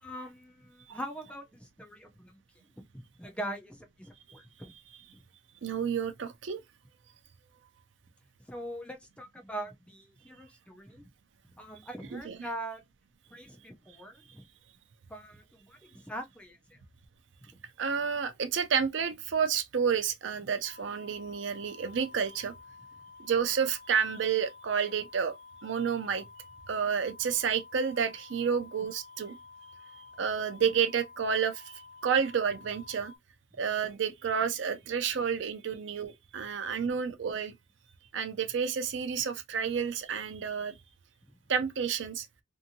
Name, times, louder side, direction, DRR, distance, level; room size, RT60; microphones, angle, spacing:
voice 1, 0.0-2.4 2.8-4.7 8.5-11.1 11.6-12.8 13.3-14.4 15.1-16.8 17.4-17.5, right 1 dB, 5° left, 0.5 m, -42 dB
voice 2, 5.6-6.6 12.1-12.5 17.8-22.5 23.2-25.4 25.6-26.3 26.7-29.3 30.0-33.1 33.6-37.5 38.1-40.7 41.5-42.3, right 7 dB, 70° right, 0.5 m, -30 dB
sound 1, 20.6-33.2, left 4 dB, 45° left, 0.8 m, -52 dB
2.7 x 2.6 x 2.6 m
head